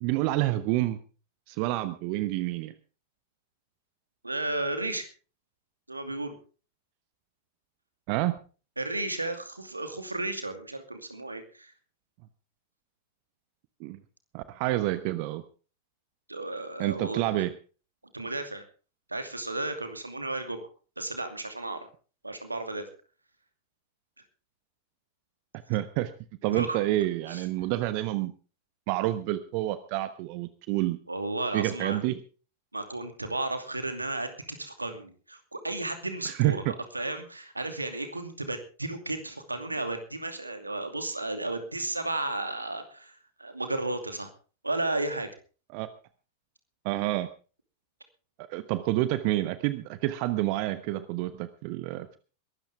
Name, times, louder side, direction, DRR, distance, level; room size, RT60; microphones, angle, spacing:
voice 1, 0.0-1.0 1.5-2.7 8.1-8.4 13.8-14.0 14.3-15.4 16.8-17.5 25.7-26.1 26.4-28.3 28.9-31.0 31.5-32.2 36.3-36.7 45.7-45.9 46.8-47.3 48.5-52.2, right 16 dB, 45° right, 13 dB, 1.0 m, -28 dB
voice 2, 4.2-5.1 5.9-6.3 8.8-11.7 16.3-17.4 18.1-18.6 19.1-20.7 21.0-21.9 22.2-22.9 26.5-26.8 27.3-27.4 31.1-32.0 32.7-36.6 36.9-44.3 44.6-45.3, right 2 dB, 85° right, 7 dB, 2.5 m, -33 dB
22.0 x 13.0 x 3.5 m, 0.36 s
figure-of-eight pair, 90°, 0 cm